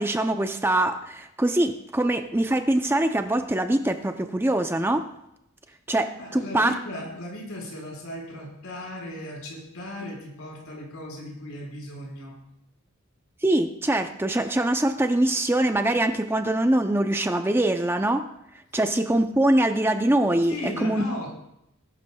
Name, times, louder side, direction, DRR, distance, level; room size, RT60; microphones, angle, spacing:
voice 1, 0.0-5.1 5.9-6.7 13.4-18.3 18.7-21.1, right 1 dB, 10° right, 7 dB, 0.5 m, -23 dB
voice 2, 6.2-12.3 20.5-21.3, left 1 dB, 85° left, -2 dB, 4.8 m, -36 dB
19.5 x 11.5 x 2.3 m, 0.79 s
head